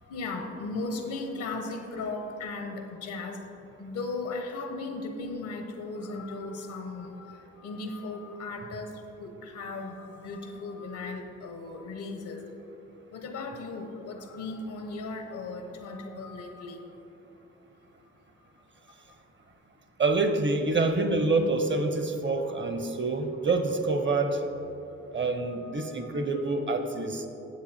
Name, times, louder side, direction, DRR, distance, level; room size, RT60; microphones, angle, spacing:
voice 1, 0.0-3.4 3.8-8.9 9.2-12.4 13.1-16.8 25.4-26.3, left 3 dB, 80° left, 5 dB, 1.1 m, -37 dB
voice 2, 20.0-24.4 25.1-27.3, right 3 dB, 40° right, 7 dB, 1.0 m, -27 dB
9.3 x 7.3 x 4.4 m, 3.0 s
cardioid pair, 65°, 30 cm